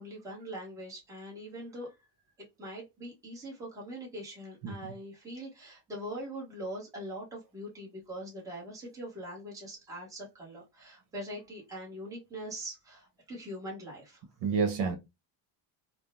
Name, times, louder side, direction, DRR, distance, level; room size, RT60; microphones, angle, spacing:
voice 1, 0.0-1.9 2.4-14.2, equal, 5° right, 1.0 m, -42 dB
voice 2, 14.4-15.0, right 5 dB, 65° right, 1.1 m, -29 dB
3.6 x 2.1 x 2.5 m
cardioid pair, 175°, 45 cm